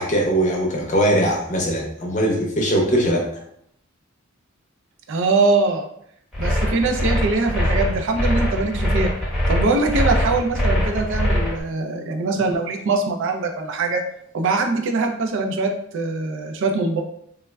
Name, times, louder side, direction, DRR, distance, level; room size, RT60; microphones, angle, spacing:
voice 1, 0.0-3.2, right 1 dB, 35° left, -1 dB, 0.6 m, -20 dB
voice 2, 5.1-5.9 6.4-14.0 14.3-17.0, right 3 dB, 60° right, 4 dB, 0.4 m, -22 dB
sound 1, 6.3-11.6, left 1 dB, ahead, 0.8 m, -21 dB
3.2 x 2.1 x 2.2 m, 0.70 s
head